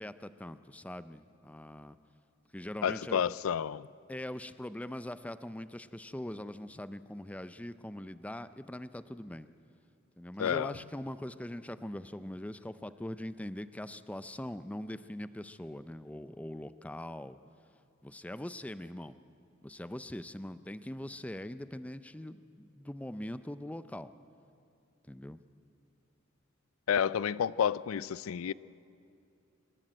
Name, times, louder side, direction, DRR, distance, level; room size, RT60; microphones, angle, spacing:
voice 1, 0.0-2.0 2.5-3.2 4.1-9.5 10.2-17.4 18.0-19.2 19.6-24.1 25.0-25.4, left 1 dB, 5° left, 13 dB, 0.4 m, -42 dB
voice 2, 2.8-3.9 10.4-10.7 26.9-28.5, left 8 dB, 90° left, 20 dB, 0.4 m, -30 dB
25.5 x 12.0 x 9.0 m, 2.5 s
head